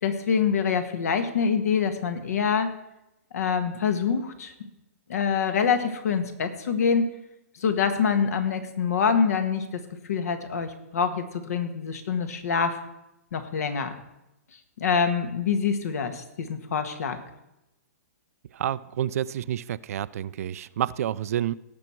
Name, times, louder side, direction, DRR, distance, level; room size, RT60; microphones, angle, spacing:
voice 1, 0.0-2.7 3.3-4.5 5.1-7.1 7.6-9.8 10.1-12.8 13.3-13.9 14.8-17.2, left 6 dB, 70° left, 8 dB, 1.6 m, -25 dB
voice 2, 18.5-21.5, right 11 dB, 65° right, 17 dB, 0.4 m, -29 dB
17.5 x 6.0 x 4.6 m, 0.92 s
hypercardioid pair, 135°, 9 cm